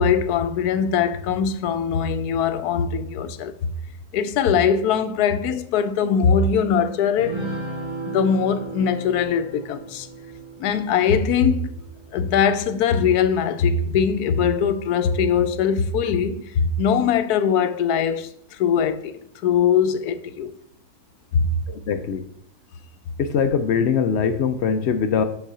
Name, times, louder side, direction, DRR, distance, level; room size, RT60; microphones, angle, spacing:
voice 1, 0.0-3.7 4.1-7.4 8.1-10.1 10.6-11.8 12.1-19.1 19.4-20.5 21.3-21.5, left 7 dB, 85° left, 1.1 m, -21 dB
sound 1, 7.2-12.8, right 2 dB, 20° right, 1.8 m, -35 dB
voice 2, 21.7-22.3 23.2-25.2, left 6 dB, 70° left, 0.6 m, -22 dB
5.5 x 4.1 x 5.9 m
omnidirectional pair, 1.6 m